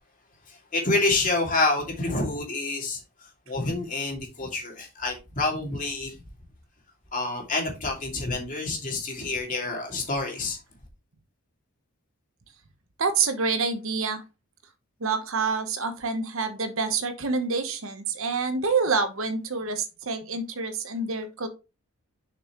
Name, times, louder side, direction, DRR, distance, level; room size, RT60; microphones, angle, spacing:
voice 1, 0.5-3.0 3.5-6.2 7.1-10.6, left 2 dB, 35° left, 2.5 m, -28 dB
voice 2, 13.0-14.2 15.0-21.5, right 4 dB, 65° right, 1.0 m, -27 dB
6.9 x 6.0 x 3.0 m
head